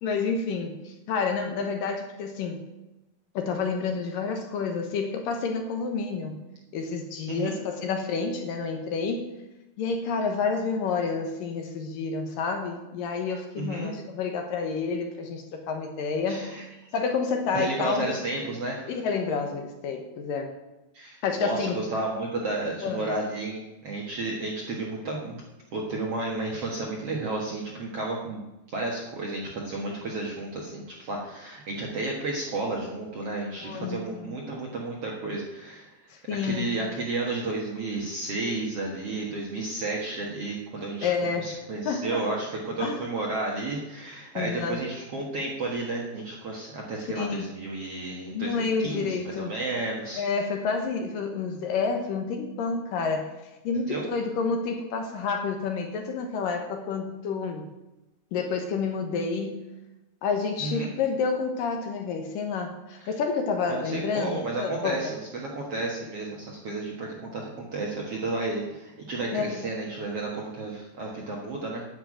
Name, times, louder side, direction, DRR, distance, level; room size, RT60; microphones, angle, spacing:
voice 1, 0.0-2.6 3.3-6.4 6.7-9.3 9.8-16.6 16.9-18.1 18.9-20.5 21.2-21.8 22.8-23.1 33.6-34.3 36.1-36.7 41.0-41.6 41.8-42.2 42.8-43.1 44.3-44.8 47.2-47.5 48.3-49.5 50.2-53.3 53.6-57.7 58.3-59.7 60.2-65.0 69.3-69.6, left 5 dB, 70° left, 4 dB, 2.5 m, -29 dB
voice 2, 13.6-13.9 16.3-16.6 17.5-18.9 20.9-25.4 25.7-28.4 28.7-35.9 36.4-41.1 41.4-50.2 53.9-54.0 60.6-60.9 63.0-63.1 63.7-71.9, right 2 dB, 55° right, -2 dB, 1.8 m, -32 dB
10.5 x 7.0 x 8.8 m, 1.0 s
omnidirectional pair, 4.7 m